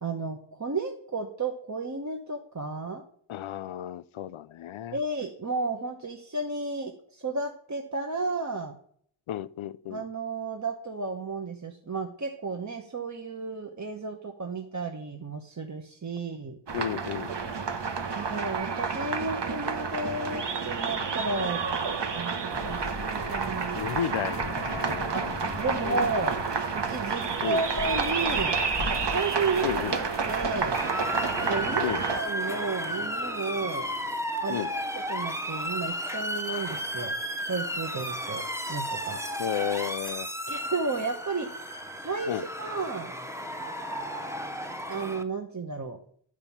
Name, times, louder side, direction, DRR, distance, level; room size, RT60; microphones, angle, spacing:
voice 1, 0.0-3.0 4.9-8.7 9.9-16.6 18.1-21.6 22.1-23.8 25.1-25.3 25.6-26.4 26.7-28.6 29.0-30.8 31.5-33.9 34.4-34.6 35.1-37.1 37.5-38.4 38.7-39.2 40.5-41.8 42.0-43.1 44.9-46.0, right 3 dB, 35° right, 4 dB, 1.0 m, -33 dB
voice 2, 3.3-5.0 9.3-10.0 16.7-17.3 23.7-26.1 27.4-27.6 29.6-30.0 31.8-32.0 34.5-34.7 39.4-40.3 42.3-42.5, left 11 dB, 75° left, 19 dB, 0.6 m, -33 dB
sound 1, 16.7-32.2, right 5 dB, 60° right, 1.1 m, -30 dB
sound 2, 22.5-30.8, left 5 dB, 30° left, 0.7 m, -41 dB
Motor vehicle (road) / Siren, 30.7-45.2, equal, 5° right, 0.9 m, -33 dB
11.0 x 4.9 x 7.1 m, 0.62 s
wide cardioid pair, 75°, 48 cm